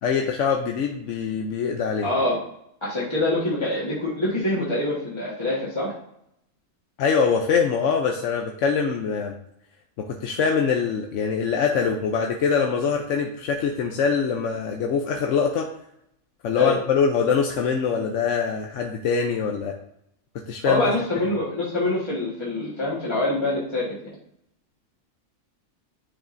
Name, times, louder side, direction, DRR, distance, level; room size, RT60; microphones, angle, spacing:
voice 1, 0.0-2.1 7.0-9.4 10.0-15.7 16.4-19.8 20.5-20.9, left 6 dB, 70° left, 2 dB, 1.0 m, -23 dB
voice 2, 2.0-2.4 2.8-5.9 16.5-16.8 20.6-24.1, left 1 dB, 20° left, -8 dB, 1.6 m, -25 dB
10.0 x 5.1 x 2.6 m, 0.76 s
omnidirectional pair, 1.4 m